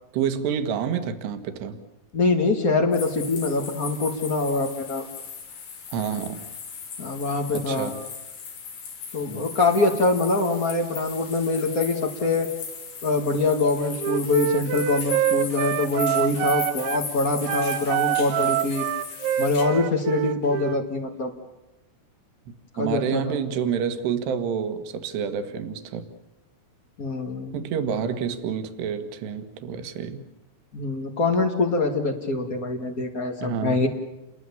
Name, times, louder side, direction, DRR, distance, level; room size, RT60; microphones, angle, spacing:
voice 1, 0.1-1.8 5.9-6.4 7.5-8.0 9.3-9.4 22.8-26.1 27.5-30.2 33.4-33.8, right 7 dB, 70° right, 8 dB, 3.7 m, -28 dB
voice 2, 2.1-5.1 7.0-7.9 9.1-12.5 13.0-18.8 19.4-21.3 22.7-23.4 27.0-27.6 30.7-33.9, left 3 dB, 50° left, 2 dB, 1.0 m, -24 dB
sound 1, 2.9-19.6, left 6 dB, 90° left, 6.7 m, -38 dB
Wind instrument woodwind instrument, 14.0-17.1 17.4-20.8, right 12 dB, 90° right, 3.4 m, -26 dB
30.0 x 22.0 x 7.2 m, 0.96 s
omnidirectional pair, 5.1 m